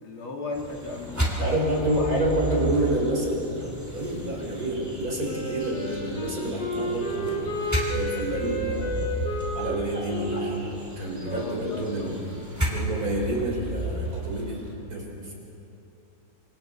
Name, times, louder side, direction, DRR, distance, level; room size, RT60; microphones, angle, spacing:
voice 1, 0.0-1.6 1.9-2.3 11.2-12.2, left 3 dB, 70° left, 1 dB, 2.8 m, -36 dB
sound 1, 0.5-14.7, right 1 dB, 5° right, 2.7 m, -34 dB
voice 2, 1.4-7.5 7.9-9.1 9.5-12.2 12.7-14.6 14.9-15.3, right 1 dB, 40° right, -1 dB, 4.2 m, -28 dB
Wind instrument woodwind instrument, 5.2-12.0, equal, 50° left, 3.1 m, -32 dB
26.5 x 25.0 x 4.3 m, 2.9 s
omnidirectional pair, 2.4 m